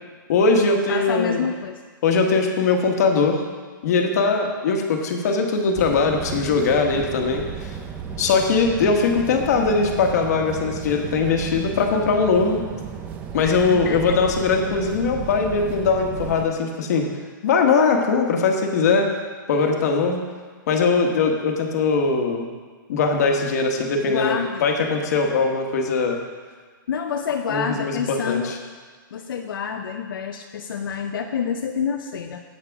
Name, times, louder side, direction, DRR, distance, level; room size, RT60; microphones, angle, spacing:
voice 1, 0.3-1.5 2.0-3.4 3.8-7.7 8.2-12.6 13.3-17.1 17.4-19.1 19.5-20.2 20.7-22.5 22.9-26.2 27.5-28.6, left 4 dB, 50° left, 3 dB, 1.4 m, -21 dB
voice 2, 0.9-1.8 13.4-14.2 23.2-23.3 24.0-24.7 26.9-28.6 29.1-32.4, left 7 dB, 80° left, 4 dB, 0.7 m, -28 dB
sound 1, 5.7-16.5, right 7 dB, 15° right, 0.5 m, -34 dB
17.0 x 6.6 x 3.6 m, 1.5 s
hypercardioid pair, 170°, 11 cm